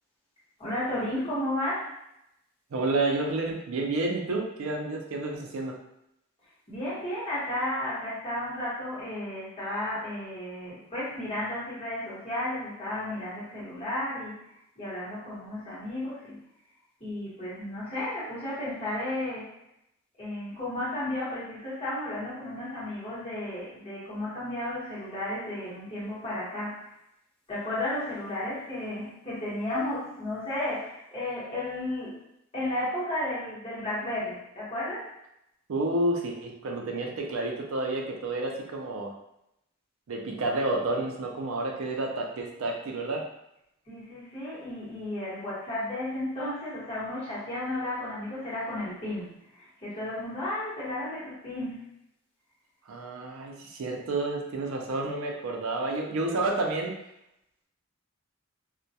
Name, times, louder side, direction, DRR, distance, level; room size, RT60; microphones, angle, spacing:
voice 1, 0.6-1.9 6.7-14.4 14.8-16.4 17.0-19.5 20.2-26.9 27.5-32.2 32.5-35.1 43.9-51.9, left 1 dB, 30° left, -10 dB, 1.0 m, -33 dB
voice 2, 2.7-5.8 35.7-39.1 40.1-43.2 52.9-56.9, right 2 dB, 75° right, 0 dB, 0.4 m, -30 dB
2.2 x 2.1 x 2.7 m, 0.81 s
head